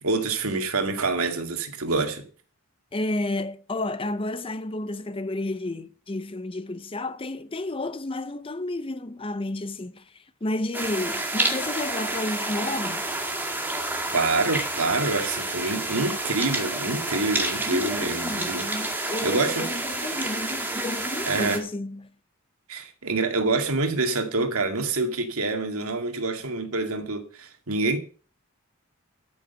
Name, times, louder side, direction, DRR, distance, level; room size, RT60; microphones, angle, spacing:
voice 1, 0.0-2.2 14.1-19.8 21.3-21.6 22.7-28.0, right 3 dB, 80° right, 2.1 m, -26 dB
voice 2, 2.9-10.1 10.4-13.1 17.6-22.1, left 2 dB, 25° left, 0.6 m, -31 dB
sound 1, 10.7-21.6, right 2 dB, 10° right, 2.1 m, -29 dB
13.5 x 6.4 x 6.9 m
head